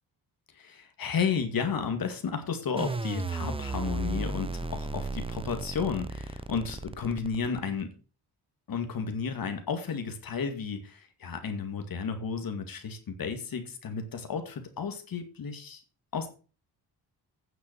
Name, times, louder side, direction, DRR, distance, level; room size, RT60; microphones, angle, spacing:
voice 1, 0.5-8.0 8.7-15.8 16.1-16.3, left 6 dB, 60° left, 6 dB, 2.2 m, -33 dB
sound 1, 2.8-7.8, right 3 dB, 15° right, 0.7 m, -34 dB
9.5 x 6.2 x 6.2 m, 0.35 s
cardioid pair, 110°, 39 cm